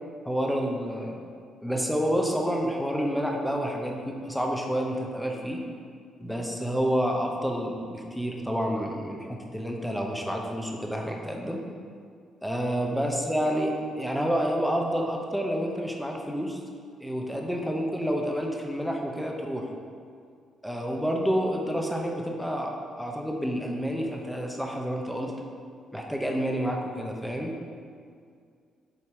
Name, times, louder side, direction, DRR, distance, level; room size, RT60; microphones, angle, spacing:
voice 1, 0.3-1.2 1.6-5.6 6.2-11.6 12.4-16.6 17.0-19.7 20.6-22.7 23.0-25.3 25.9-27.5, equal, ahead, 0 dB, 0.8 m, -29 dB
7.5 x 2.8 x 4.7 m, 2.2 s
cardioid pair, 90°, 0 cm